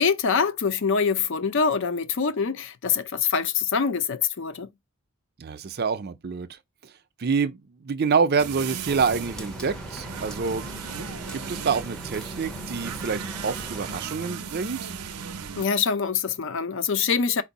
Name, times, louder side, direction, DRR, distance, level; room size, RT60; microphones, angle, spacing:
voice 1, 0.0-4.7 15.6-17.4, left 6 dB, 55° left, 0.5 m, -24 dB
voice 2, 5.4-6.6 7.2-10.6 11.3-14.9, right 5 dB, 45° right, 0.5 m, -27 dB
sound 1, 8.4-15.7, right 6 dB, 90° right, 0.6 m, -36 dB
Rain, 8.9-14.1, left 1 dB, 5° left, 0.6 m, -40 dB
4.4 x 2.6 x 4.0 m
head